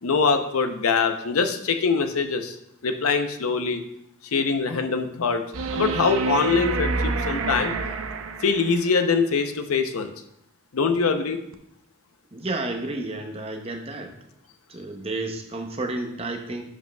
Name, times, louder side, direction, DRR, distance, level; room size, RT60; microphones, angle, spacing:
voice 1, 0.0-2.6 2.8-3.8 4.3-5.4 5.7-7.7 8.4-10.1 10.7-11.4, left 5 dB, 85° left, 7 dB, 0.6 m, -23 dB
sound 1, 5.5-8.9 11.5-11.6, right 4 dB, 70° right, 0.5 m, -28 dB
voice 2, 12.3-14.1 14.7-16.6, right 2 dB, 25° right, 4 dB, 0.7 m, -31 dB
10.5 x 5.1 x 2.2 m, 0.80 s
head